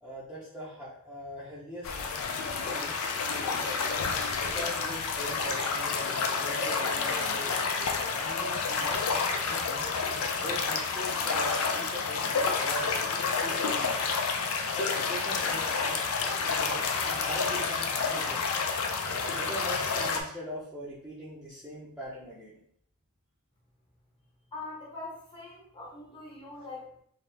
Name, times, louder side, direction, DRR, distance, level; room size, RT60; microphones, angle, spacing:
voice 1, 0.0-2.0 2.5-2.9 3.3-3.9 4.4-9.8 10.4-13.0 13.4-14.2 14.8-16.1 16.4-18.5 19.0-22.6, equal, 5° right, -10 dB, 0.6 m, -41 dB
sound 1, 1.8-20.2, left 5 dB, 70° left, 0.4 m, -29 dB
voice 2, 24.5-27.0, left 3 dB, 20° left, -4 dB, 0.9 m, -43 dB
2.7 x 2.3 x 3.2 m, 0.68 s
head